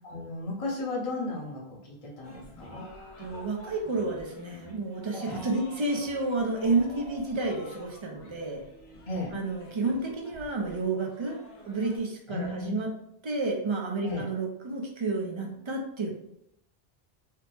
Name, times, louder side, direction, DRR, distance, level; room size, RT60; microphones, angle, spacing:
voice 1, 0.0-2.9 5.1-5.4 9.1-9.3 12.3-12.8 14.0-14.3, left 2 dB, 35° left, -4 dB, 0.8 m, -35 dB
sound 1, 2.2-12.0, left 1 dB, 75° left, 1.0 m, -49 dB
voice 2, 3.2-8.6 9.3-11.4 11.7-12.9 13.2-16.1, right 3 dB, 45° right, 0 dB, 0.4 m, -30 dB
3.3 x 2.0 x 3.2 m, 0.77 s
omnidirectional pair, 1.1 m